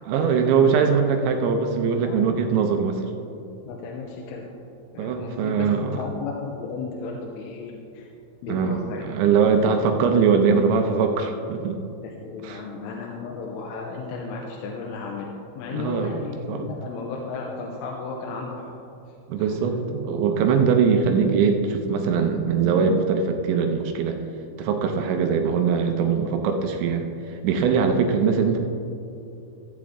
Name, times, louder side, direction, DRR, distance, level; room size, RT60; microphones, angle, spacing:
voice 1, 0.1-3.0 5.0-6.0 8.5-11.8 12.4-12.6 15.7-16.2 16.5-16.7 19.3-24.2 24.6-28.6, right 6 dB, 80° right, 4 dB, 2.7 m, -22 dB
voice 2, 3.6-4.5 4.9-8.1 8.4-9.1 9.3-9.4 9.8-9.9 12.0-18.7 19.4-19.6, left 4 dB, 90° left, 0 dB, 3.3 m, -34 dB
15.5 x 8.1 x 3.6 m, 2.7 s
omnidirectional pair, 5.6 m